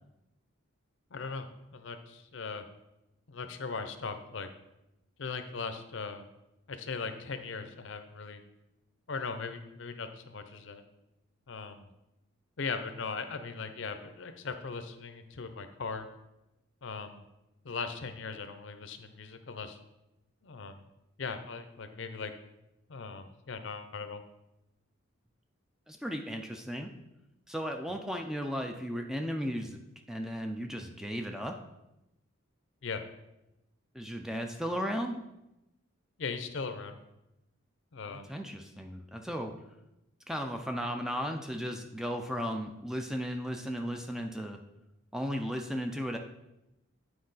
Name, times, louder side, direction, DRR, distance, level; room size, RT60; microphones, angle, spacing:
voice 1, 1.1-1.5 1.7-2.6 3.3-4.5 5.2-6.3 6.7-8.4 9.1-10.8 11.5-11.9 12.6-16.1 16.8-17.2 17.6-19.8 20.4-20.8 21.2-22.3 22.9-24.2 32.8-33.0 36.2-37.0 37.9-38.3, left 4 dB, 60° left, 8 dB, 0.6 m, -39 dB
voice 2, 25.9-26.9 27.5-29.8 30.1-31.6 33.9-35.2 38.0-39.5 40.3-44.6 45.1-46.2, equal, ahead, 4 dB, 0.4 m, -35 dB
8.7 x 4.6 x 4.0 m, 0.92 s
head